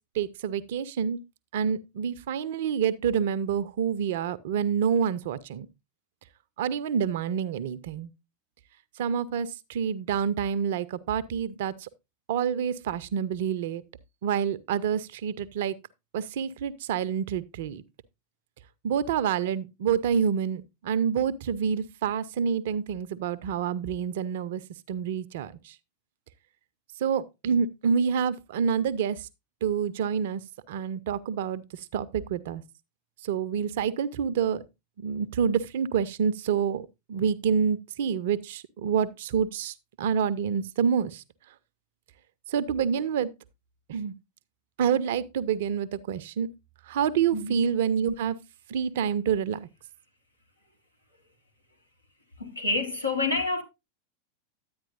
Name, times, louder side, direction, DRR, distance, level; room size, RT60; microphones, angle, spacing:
voice 1, 0.2-1.2 1.5-5.7 6.6-8.1 9.0-11.9 12.3-13.8 14.2-15.8 16.1-17.8 18.8-24.6 24.9-25.7 27.0-29.2 29.6-30.4 30.7-31.6 31.9-32.6 33.2-34.6 35.0-41.2 42.5-43.3 43.9-44.1 44.8-46.5 46.9-48.4 48.7-49.7, right 7 dB, 55° right, 0.5 m, -27 dB
voice 2, 52.4-53.6, left 3 dB, 85° left, 1.3 m, -28 dB
10.0 x 8.9 x 2.5 m
figure-of-eight pair, 90°, 0 cm